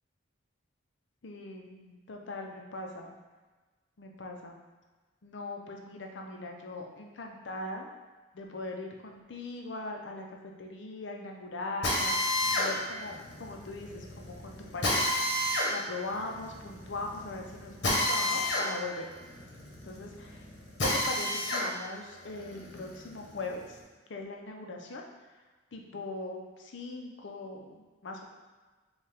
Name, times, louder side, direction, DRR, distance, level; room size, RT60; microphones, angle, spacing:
voice 1, 1.2-3.1 4.0-4.6 5.2-7.9 8.3-15.1 15.7-19.1 19.8-20.5 20.8-23.8 24.1-25.0 25.7-28.2, left 2 dB, 80° left, 2 dB, 0.6 m, -40 dB
Drill, 11.8-21.7 22.1-23.7, left 1 dB, 65° left, 1.1 m, -31 dB
5.5 x 2.4 x 3.4 m, 1.3 s
head